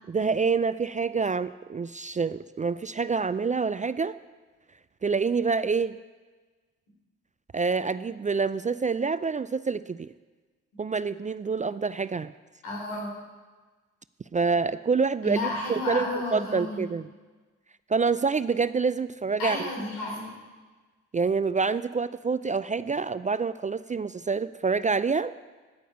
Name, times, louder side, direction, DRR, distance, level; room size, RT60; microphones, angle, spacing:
voice 1, 0.1-4.2 5.0-6.0 7.5-10.1 10.8-12.3 14.3-16.1 16.3-17.1 17.9-19.6 21.1-25.3, right 5 dB, 20° right, 15 dB, 0.4 m, -27 dB
voice 2, 12.6-13.1 15.2-16.8 19.4-20.3, left 2 dB, 80° left, -1 dB, 3.8 m, -31 dB
9.5 x 9.2 x 8.1 m, 1.3 s
hypercardioid pair, 45°, 35 cm